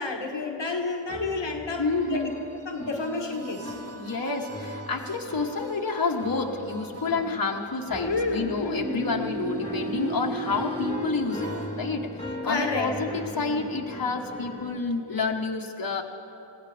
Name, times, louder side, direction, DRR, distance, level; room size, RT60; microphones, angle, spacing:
voice 1, 0.0-2.3 2.6-3.7 8.0-9.7 12.4-12.9 13.3-13.7, left 3 dB, 60° left, 2 dB, 1.3 m, -31 dB
sound 1, 1.1-14.8, left 1 dB, 10° left, 1.8 m, -40 dB
voice 2, 1.8-2.3 3.9-12.1 12.4-16.0, left 4 dB, 45° left, 1 dB, 1.3 m, -29 dB
sound 2, 1.9-11.9, right 2 dB, 30° right, 0.9 m, -38 dB
21.0 x 16.0 x 3.4 m, 2.8 s
cardioid pair, 45°, 48 cm